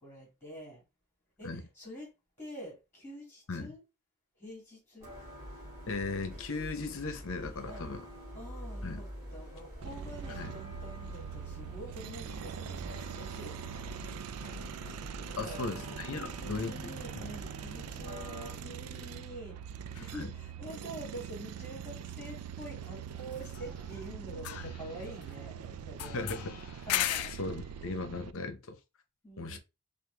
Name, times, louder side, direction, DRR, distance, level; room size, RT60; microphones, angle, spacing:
voice 1, 0.0-0.8 1.4-2.1 2.4-3.8 4.4-5.1 7.7-7.8 8.3-15.6 16.1-19.7 20.0-26.3 26.9-27.3 29.2-29.6, right 1 dB, 10° left, 2.2 m, -47 dB
sound 1, 5.0-18.5, equal, 15° right, 2.5 m, -46 dB
voice 2, 5.9-8.0 8.8-9.0 10.4-10.5 15.4-16.8 17.1-17.3 20.2-20.3 26.1-26.5 26.9-27.1 27.4-28.8 29.4-29.6, left 3 dB, 60° left, 0.8 m, -37 dB
sound 2, 9.8-28.3, right 8 dB, 85° right, 0.3 m, -43 dB
sound 3, 19.9-20.1 23.3-24.1 24.3-25.5 26.0-27.5, left 13 dB, 75° left, 0.3 m, -37 dB
5.0 x 2.2 x 3.3 m
head